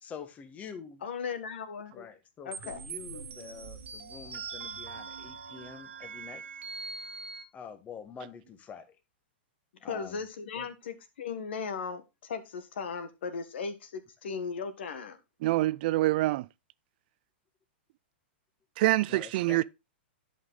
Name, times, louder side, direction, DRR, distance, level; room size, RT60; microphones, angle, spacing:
voice 1, 0.0-1.0 1.9-6.4 7.5-9.0 9.8-10.2 10.5-10.7 19.1-19.6, left 6 dB, 25° left, 1.4 m, -46 dB
voice 2, 1.0-2.1 2.4-2.8 9.8-15.2, left 5 dB, 70° left, 1.7 m, -37 dB
sound 1, 2.5-7.4, right 5 dB, 90° right, 1.6 m, -42 dB
voice 3, 15.4-16.5 18.8-19.6, right 17 dB, 55° right, 0.4 m, -25 dB
11.0 x 5.4 x 3.8 m
hypercardioid pair, 125°, 6 cm